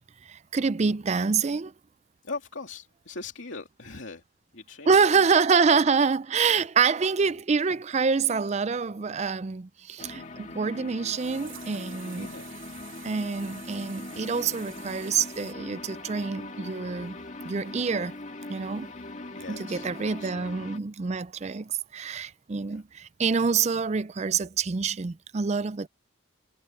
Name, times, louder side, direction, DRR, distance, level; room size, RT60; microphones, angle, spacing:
voice 1, 0.2-1.7 4.9-12.3 13.0-18.2 18.5-18.9 19.5-25.9, right 5 dB, 30° right, 0.4 m, -26 dB
voice 2, 2.2-4.2 4.5-5.3 6.5-6.6 12.0-12.6 19.1-20.3 22.7-22.8, left 3 dB, 65° left, 2.8 m, -41 dB
sound 1, 10.0-20.8, left 2 dB, 35° left, 2.1 m, -41 dB
sound 2, 11.1-15.5, right 13 dB, 70° right, 2.6 m, -49 dB
head